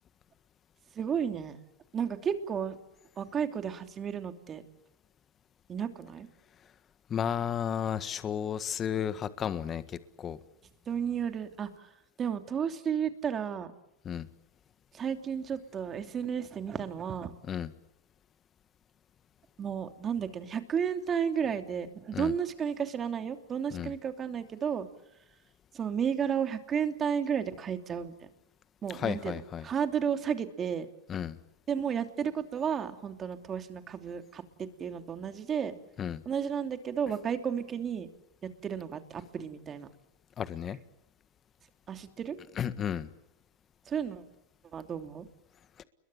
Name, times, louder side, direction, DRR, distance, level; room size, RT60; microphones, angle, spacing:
voice 1, 0.9-1.6 1.9-2.8 3.2-4.6 5.7-6.3 10.9-11.9 12.2-13.7 14.9-17.3 19.6-24.9 25.7-28.3 28.8-30.9 31.7-35.7 36.2-38.1 38.4-39.9 41.9-42.4 43.8-44.2 44.7-45.3, right 7 dB, 25° right, 7 dB, 2.9 m, -33 dB
voice 2, 7.1-10.4 14.0-14.3 17.5-17.7 22.1-22.3 23.7-23.9 28.9-29.7 31.1-31.4 36.0-36.2 40.4-40.8 42.6-43.1 45.8-45.9, left 8 dB, 30° left, 13 dB, 1.6 m, -33 dB
29.5 x 22.5 x 7.3 m, 0.87 s
hypercardioid pair, 120°, 0 cm